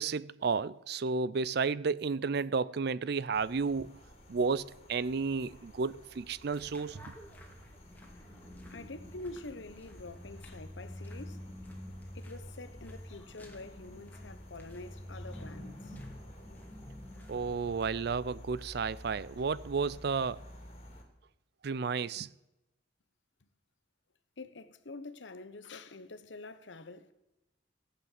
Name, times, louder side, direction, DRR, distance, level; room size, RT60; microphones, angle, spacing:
voice 1, 0.0-4.0 4.3-7.1 17.3-20.4 21.6-22.3, right 5 dB, 60° right, 0.5 m, -32 dB
sound 1, 3.3-21.0, equal, 35° left, 2.8 m, -53 dB
sound 2, 6.5-17.9, left 1 dB, 10° left, 2.5 m, -48 dB
voice 2, 8.7-11.5 12.1-16.1 23.4-23.5 24.4-27.1, left 2 dB, 80° left, 1.1 m, -46 dB
15.0 x 8.6 x 7.4 m
head